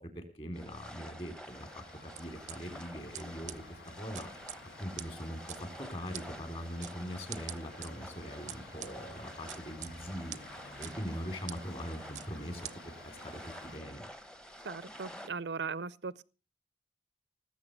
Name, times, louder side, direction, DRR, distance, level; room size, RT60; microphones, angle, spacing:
voice 1, 0.0-4.3 4.8-10.4 10.8-14.1, equal, 35° left, 4.1 m, -42 dB
sound 1, 0.5-15.3, equal, 5° left, 1.1 m, -49 dB
sound 2, 1.5-13.8, left 2 dB, 75° left, 3.3 m, -53 dB
sound 3, 2.2-2.6 3.1-3.2 3.5-3.6 4.1-4.6 5.0-5.1 5.5-5.6 6.1-6.2 6.8-6.9 7.3-7.9 8.5-8.9 9.5-9.9 10.3-10.4 10.8-10.9 11.5-11.6 12.1-12.3 12.6-12.7, right 12 dB, 40° right, 0.6 m, -42 dB
voice 2, 14.6-16.2, right 5 dB, 80° right, 0.6 m, -38 dB
19.0 x 8.4 x 6.9 m
head